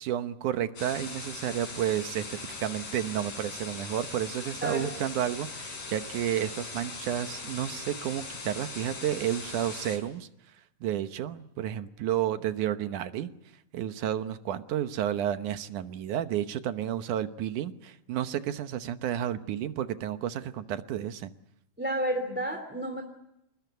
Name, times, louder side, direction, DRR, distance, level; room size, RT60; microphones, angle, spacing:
voice 1, 0.0-10.3 10.8-13.3 13.7-21.3, right 11 dB, 70° right, 10 dB, 2.5 m, -31 dB
sound 1, 0.8-10.0, left 3 dB, 80° left, 7.5 m, -40 dB
voice 2, 21.8-23.0, right 1 dB, 5° right, 4 dB, 2.7 m, -31 dB
27.5 x 20.5 x 8.2 m, 0.82 s
omnidirectional pair, 3.8 m